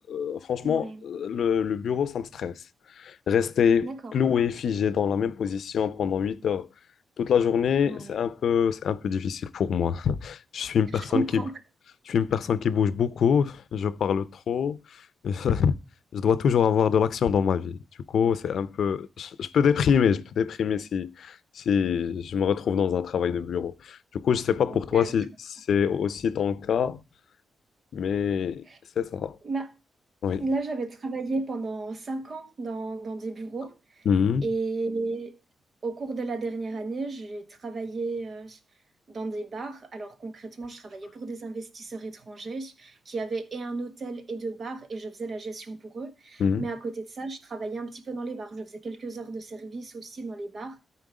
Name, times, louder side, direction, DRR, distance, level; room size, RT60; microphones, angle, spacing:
voice 1, 0.0-2.5 3.0-6.7 7.2-11.4 12.1-15.8 16.1-17.8 18.1-27.0 27.9-28.7 29.0-29.4 30.2-30.4 34.1-34.5 46.4-46.6, left 7 dB, 70° left, 0.6 m, -25 dB
voice 2, 0.6-1.0 3.8-4.1 7.9-8.2 11.0-11.5 24.7-25.1 28.7-28.8 29.4-29.7 30.4-34.0 34.4-35.4 35.8-38.6 39.1-50.8, right 3 dB, 45° right, 1.4 m, -34 dB
13.0 x 4.5 x 4.8 m
cardioid pair, 105°, 0 cm